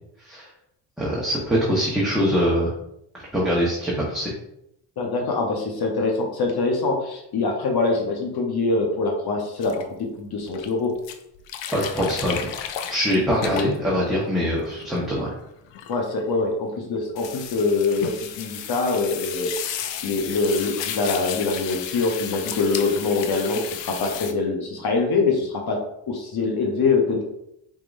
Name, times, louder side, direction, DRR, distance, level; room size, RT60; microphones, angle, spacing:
voice 1, 1.0-2.7 3.3-4.3 11.7-12.4 12.9-15.3, equal, ahead, -7 dB, 1.2 m, -23 dB
voice 2, 5.0-10.9 15.9-27.2, left 3 dB, 55° left, 1 dB, 1.0 m, -24 dB
sound 1, 9.6-9.8 10.5-10.7 11.0-14.0 14.5-16.3 17.2-24.3, left 9 dB, 75° left, 0.6 m, -33 dB
4.7 x 3.7 x 2.6 m, 0.79 s
cardioid pair, 80°, 45 cm